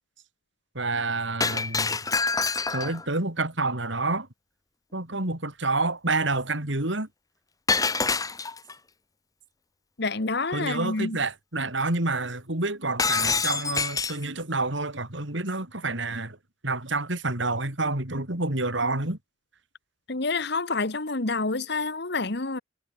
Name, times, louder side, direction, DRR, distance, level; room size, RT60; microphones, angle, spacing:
voice 1, 0.7-2.0 2.7-4.3 4.9-7.1 10.5-16.4 16.6-19.2, right 2 dB, 70° right, 4.0 m, -28 dB
Shatter, 1.4-3.1 7.7-8.7 13.0-14.3, left 4 dB, 20° left, 1.4 m, -26 dB
voice 2, 10.0-11.2 20.1-22.6, left 3 dB, 55° left, 1.5 m, -28 dB
head